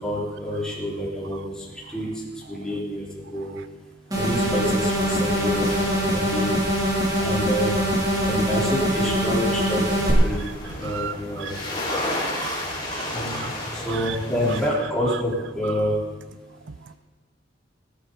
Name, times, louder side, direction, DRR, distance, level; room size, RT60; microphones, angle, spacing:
voice 1, 0.0-1.4 1.9-2.1 2.5-3.0 3.3-3.5 4.1-5.7 6.0-6.5 7.2-7.7 8.2-9.8 10.2-10.4 10.8-11.6 13.1-13.5 13.8-15.9, equal, 5° left, 3.9 m, -27 dB
sound 1, 4.1-10.1, equal, 20° right, 3.1 m, -23 dB
sound 2, 4.8-14.7, left 1 dB, 25° left, 3.2 m, -34 dB
voice 2, 10.8-11.5 11.9-14.2, right 8 dB, 70° right, 0.4 m, -36 dB
16.5 x 12.5 x 4.1 m
head